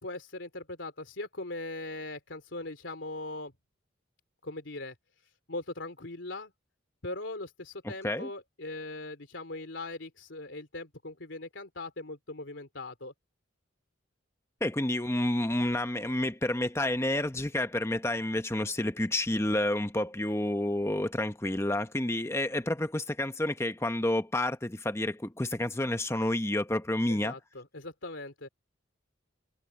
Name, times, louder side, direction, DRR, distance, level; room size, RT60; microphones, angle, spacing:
voice 1, 0.0-3.5 4.4-4.9 5.5-6.5 7.0-13.1 27.1-28.5, left 2 dB, 70° left, 3.2 m, -40 dB
voice 2, 14.6-27.3, left 1 dB, 15° left, 1.0 m, -29 dB
head